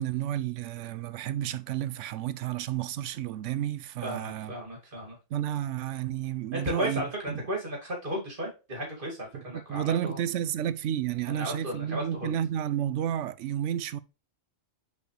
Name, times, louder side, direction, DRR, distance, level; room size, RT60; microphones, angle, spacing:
voice 1, 0.0-4.5 5.3-7.4 9.3-14.0, right 11 dB, 75° right, 0.9 m, -31 dB
voice 2, 4.0-5.2 6.5-10.2 11.3-12.3, equal, 40° right, 2.6 m, -34 dB
6.4 x 5.1 x 3.2 m
omnidirectional pair, 1.3 m